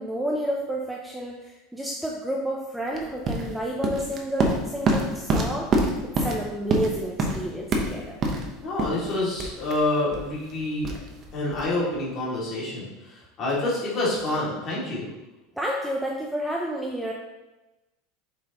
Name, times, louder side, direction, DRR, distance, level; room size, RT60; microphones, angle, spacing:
voice 1, 0.0-5.7 6.2-8.2 15.6-17.1, right 1 dB, 5° right, -1 dB, 0.5 m, -30 dB
sound 1, 2.9-11.7, right 2 dB, 30° right, 0.9 m, -27 dB
voice 2, 8.6-10.9 11.3-15.1, left 2 dB, 30° left, -6 dB, 2.4 m, -27 dB
7.3 x 5.4 x 3.0 m, 1.1 s
supercardioid pair, 170°, 0 cm